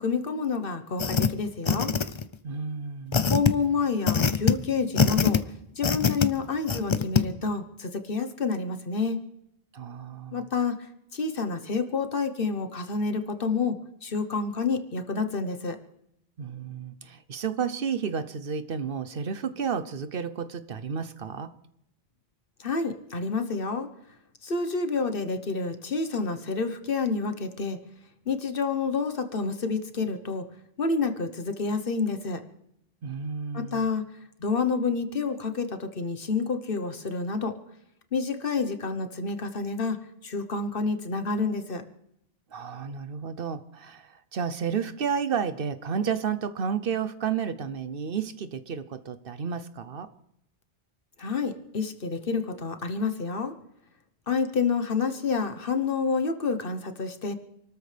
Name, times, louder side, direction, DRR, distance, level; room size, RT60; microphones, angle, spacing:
voice 1, 0.0-1.9 3.3-5.4 5.7-9.2 10.3-15.8 22.6-23.9 24.4-27.8 28.3-30.5 30.8-32.4 33.5-34.0 34.4-37.6 38.1-41.8 51.2-53.5 54.3-57.3, left 4 dB, 55° left, 8 dB, 1.3 m, -28 dB
sound 1, 1.0-1.3 1.7-2.3 3.1-3.5 4.1-4.5 5.0-5.4 5.8-6.3 6.7-7.2, left 5 dB, 35° left, 0.5 m, -22 dB
voice 2, 2.4-3.2 9.7-10.4 16.4-21.5 33.0-33.9 42.5-50.1, right 6 dB, 60° right, 12 dB, 0.9 m, -31 dB
28.0 x 13.0 x 3.4 m, 0.79 s
omnidirectional pair, 1.1 m